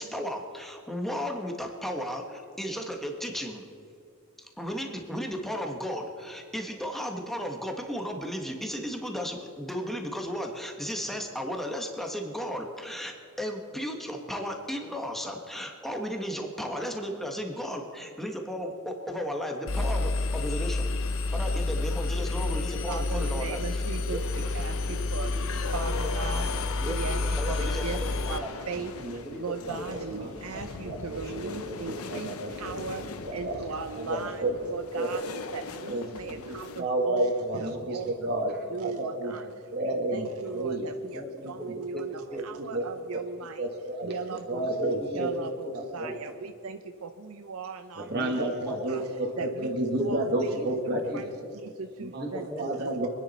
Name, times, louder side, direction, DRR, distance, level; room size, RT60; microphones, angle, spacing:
voice 1, 0.0-3.6 4.4-25.8 26.8-28.5 29.7-29.8 30.2-30.4 41.1-41.6 41.9-42.4 42.8-42.9 44.6-45.5 46.0-46.1 48.1-48.9 50.5-51.5 52.2-53.1, equal, ahead, 2 dB, 1.6 m, -35 dB
sound 1, 19.1-21.4 24.0-36.8, left 4 dB, 90° left, 1.0 m, -40 dB
Engine, 19.7-28.4, left 2 dB, 65° left, 0.7 m, -29 dB
voice 2, 22.9-25.4 25.7-28.0 28.3-28.9 29.4-32.3 32.6-33.0 33.3-38.3 38.7-43.7 44.0-44.7 45.1-49.0 49.4-53.1, right 5 dB, 80° right, 7 dB, 0.6 m, -38 dB
voice 3, 29.9-32.2 33.0-33.6 33.9-34.6 34.9-35.2 35.9-39.4 39.7-40.3 40.5-40.9 41.4-41.8 42.3-42.9 43.1-43.2 43.6-44.1 44.5-45.3 45.7-46.1 48.0-51.2 52.0-52.3 52.6-53.1, right 1 dB, 50° right, 0 dB, 1.9 m, -31 dB
25.5 x 10.0 x 4.3 m, 2.5 s
head